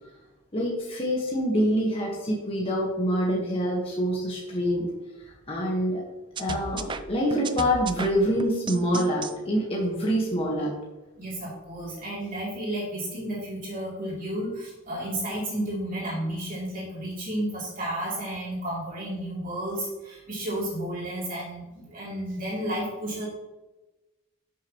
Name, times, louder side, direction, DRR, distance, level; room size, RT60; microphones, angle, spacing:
voice 1, 0.5-4.9 5.2-6.0 6.4-10.7, equal, 25° left, -4 dB, 1.4 m, -26 dB
sound 1, 6.4-9.3, right 4 dB, 20° right, 0.4 m, -34 dB
voice 2, 11.2-23.3, right 1 dB, 40° right, -6 dB, 3.0 m, -32 dB
11.0 x 6.8 x 3.1 m, 1.1 s
head